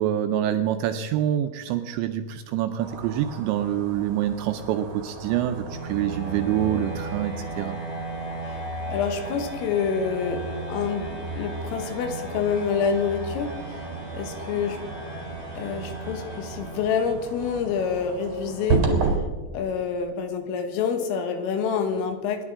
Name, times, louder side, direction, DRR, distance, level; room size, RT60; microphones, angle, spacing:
voice 1, 0.0-7.8, right 11 dB, 80° right, 8 dB, 2.7 m, -26 dB
sound 1, 2.8-19.2, right 5 dB, 55° right, 1.9 m, -34 dB
sound 2, 4.5-17.3, right 1 dB, 10° left, 2.3 m, -36 dB
voice 2, 8.9-10.5 10.7-13.8 14.1-14.8 15.6-18.9 19.5-22.4, left 6 dB, 90° left, 6 dB, 4.0 m, -27 dB
26.0 x 11.0 x 3.7 m, 1.3 s
omnidirectional pair, 5.8 m